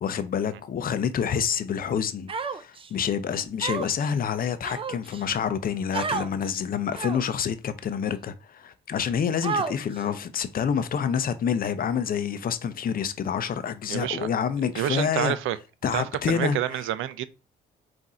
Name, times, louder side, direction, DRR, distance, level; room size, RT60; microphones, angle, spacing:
voice 1, 0.0-15.4 15.8-16.6, left 7 dB, 45° left, 0.6 m, -27 dB
Human voice, 2.3-2.9 3.6-4.1 4.6-5.2 5.9-6.3 6.9-7.4 8.1-8.2 9.4-10.0, right 5 dB, 25° right, 0.4 m, -30 dB
voice 2, 13.9-14.3 14.8-15.6 15.9-17.3, right 12 dB, 85° right, 0.5 m, -28 dB
3.7 x 2.6 x 4.2 m
cardioid pair, 90°, 20 cm